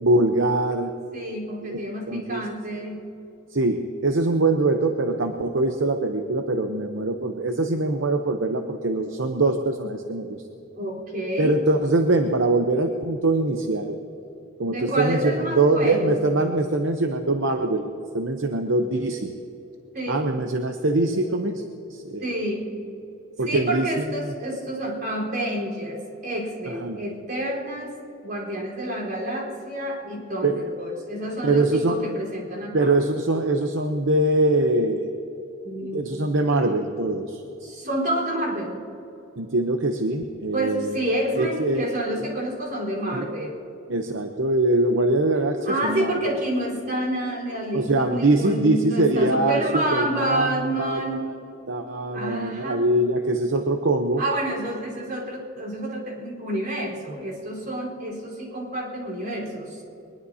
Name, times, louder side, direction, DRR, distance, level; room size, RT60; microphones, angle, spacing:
voice 1, 0.0-0.9 1.7-1.8 2.1-2.4 3.5-10.4 11.4-14.0 14.6-17.9 18.1-19.3 20.1-21.6 21.9-22.3 23.4-23.9 24.2-24.3 26.7-27.0 30.4-30.6 31.4-32.0 32.7-35.0 35.9-37.4 39.4-40.9 41.4-41.9 43.1-43.3 43.9-46.1 47.7-51.3 51.7-54.2, right 2 dB, 65° right, 5 dB, 0.8 m, -23 dB
voice 2, 1.1-3.1 10.8-11.6 14.6-16.2 19.9-20.3 22.2-22.7 23.5-28.0 28.2-32.9 35.6-36.1 37.6-38.8 40.5-43.6 45.7-51.3 52.1-52.8 54.2-59.8, right 1 dB, 45° right, -4 dB, 4.1 m, -29 dB
22.5 x 21.0 x 2.8 m, 3.0 s
head